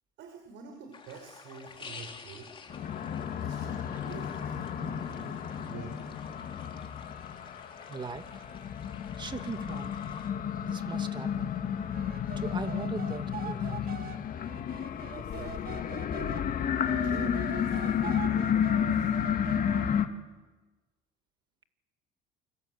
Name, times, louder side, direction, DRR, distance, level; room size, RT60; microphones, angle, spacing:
voice 1, 0.2-2.5 3.4-6.3 15.1-15.9 16.8-19.1, right 5 dB, 65° right, 3 dB, 5.6 m, -48 dB
sound 1, 0.9-10.3, left 5 dB, 25° left, 3.4 m, -50 dB
sound 2, 2.7-20.1, left 8 dB, 45° left, 2.0 m, -32 dB
voice 2, 7.9-8.5 9.2-10.0 10.6-11.5 12.4-14.0, right 4 dB, 25° right, 7 dB, 2.2 m, -40 dB
sound 3, 11.9-16.4 16.8-20.0, right 10 dB, 50° right, 1.7 m, -44 dB
28.5 x 25.0 x 8.0 m, 1.2 s
cardioid pair, 115°, 20 cm